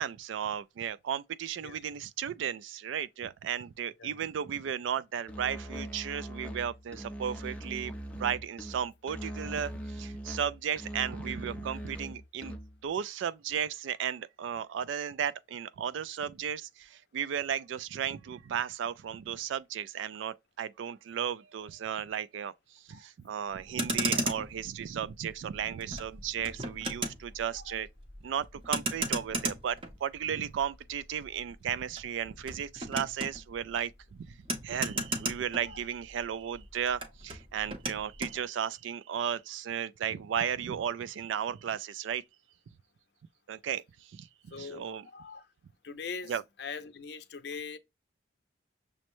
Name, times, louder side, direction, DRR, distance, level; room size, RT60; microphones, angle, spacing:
voice 1, 0.0-27.9 28.2-34.4 34.6-42.2 43.5-44.3 44.6-45.1 46.3-46.4, right 8 dB, 80° right, 0.3 m, -35 dB
Musical instrument, 5.3-12.9, equal, 5° left, 0.5 m, -41 dB
Motor vehicle (road), 23.6-36.2 36.5-38.4, right 2 dB, 30° right, 0.7 m, -36 dB
voice 2, 44.5-45.5 45.8-47.8, left 5 dB, 60° left, 0.5 m, -42 dB
6.2 x 2.1 x 2.9 m
head